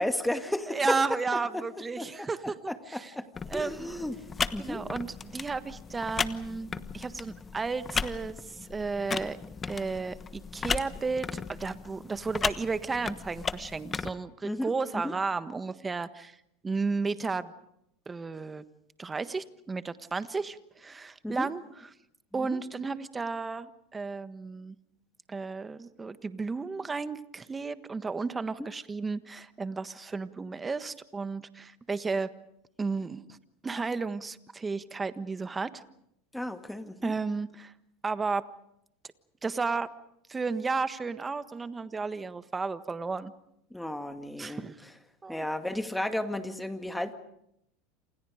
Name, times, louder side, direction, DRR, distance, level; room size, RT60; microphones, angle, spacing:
voice 1, 0.0-1.0 1.5-1.6 2.0-2.3 2.7-3.3 3.5-4.2 4.5-4.8 14.4-15.1 21.2-21.5 22.5-22.6 28.6-28.7 36.3-37.1 43.7-44.6 45.3-47.1, left 1 dB, 5° left, 8 dB, 2.1 m, -33 dB
voice 2, 0.7-3.1 3.5-4.0 4.6-9.4 9.7-16.4 16.6-17.5 18.1-18.6 19.0-21.6 22.3-24.7 25.3-32.3 32.8-33.2 33.6-35.8 37.0-37.7 38.0-38.5 39.4-39.9 40.3-43.3 44.4-44.8 45.2-45.4, right 4 dB, 20° right, 12 dB, 1.4 m, -33 dB
sound 1, 3.4-14.1, left 5 dB, 25° left, 1.2 m, -36 dB
28.5 x 28.0 x 5.1 m, 0.77 s
hypercardioid pair, 95°, 0 cm